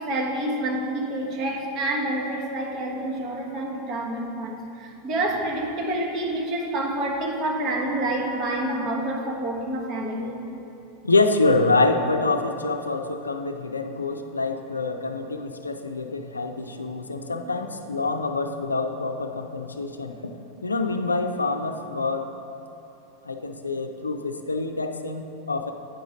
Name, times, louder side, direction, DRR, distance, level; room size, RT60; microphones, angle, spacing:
voice 1, 0.0-10.4, right 1 dB, 40° right, 0 dB, 1.2 m, -28 dB
voice 2, 11.0-22.4 23.2-25.7, left 3 dB, 85° left, 6 dB, 0.4 m, -26 dB
9.0 x 5.0 x 4.9 m, 2.9 s
figure-of-eight pair, 90°, 0 cm